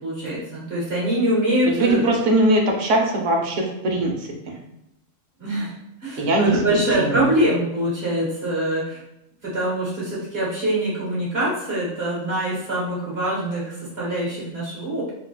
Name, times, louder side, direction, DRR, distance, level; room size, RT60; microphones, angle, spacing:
voice 1, 0.0-2.1 5.4-5.7 6.0-9.0 9.4-15.1, right 1 dB, 55° right, -7 dB, 1.5 m, -24 dB
voice 2, 1.7-4.1 6.2-7.3, right 1 dB, 70° right, 1 dB, 1.1 m, -21 dB
3.7 x 3.7 x 2.3 m, 0.87 s
omnidirectional pair, 1.3 m